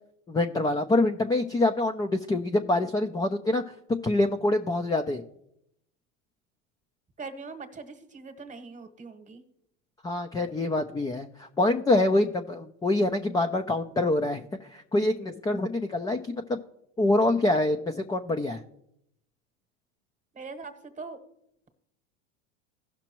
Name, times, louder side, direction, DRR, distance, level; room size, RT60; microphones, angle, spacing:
voice 1, 0.3-3.7 4.0-5.2 10.0-16.6 17.0-18.6, left 2 dB, 10° left, 5 dB, 0.4 m, -25 dB
voice 2, 7.2-9.4 20.3-21.2, right 4 dB, 20° right, 10 dB, 1.2 m, -41 dB
16.5 x 5.9 x 3.0 m, 0.77 s
hypercardioid pair, 100°, 38 cm